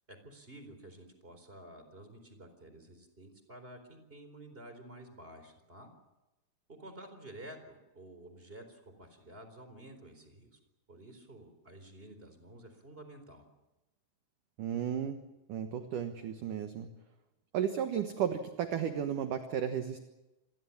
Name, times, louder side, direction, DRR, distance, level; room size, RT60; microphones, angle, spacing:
voice 1, 0.1-5.9 6.7-10.6 10.9-13.5, right 1 dB, 15° right, 8 dB, 3.7 m, -51 dB
voice 2, 14.6-15.2 15.5-16.9 17.5-20.0, right 9 dB, 65° right, 7 dB, 2.2 m, -34 dB
28.0 x 21.5 x 7.2 m, 1.0 s
omnidirectional pair, 5.4 m